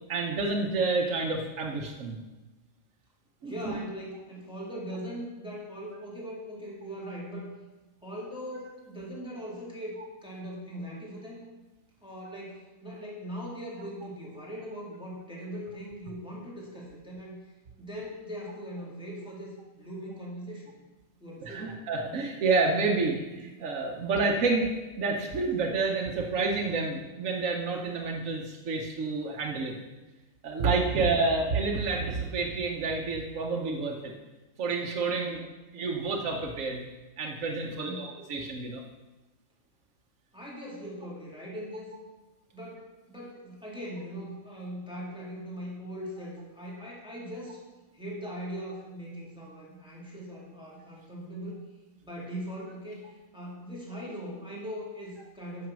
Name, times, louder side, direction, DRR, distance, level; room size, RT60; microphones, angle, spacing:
voice 1, 0.1-2.2 3.4-3.7 21.4-24.7 25.0-29.7 30.4-34.1 34.6-35.4 35.7-36.8 37.2-38.8, right 3 dB, 85° right, 0 dB, 1.3 m, -29 dB
voice 2, 3.4-7.5 8.0-11.4 12.0-17.5 17.8-20.7 21.2-21.8 30.8-31.2 35.2-35.5 37.6-38.1 40.3-41.9 42.5-47.6 47.9-51.6 52.0-55.7, equal, 5° right, -5 dB, 1.9 m, -40 dB
9.2 x 5.8 x 6.1 m, 1.1 s
omnidirectional pair, 1.3 m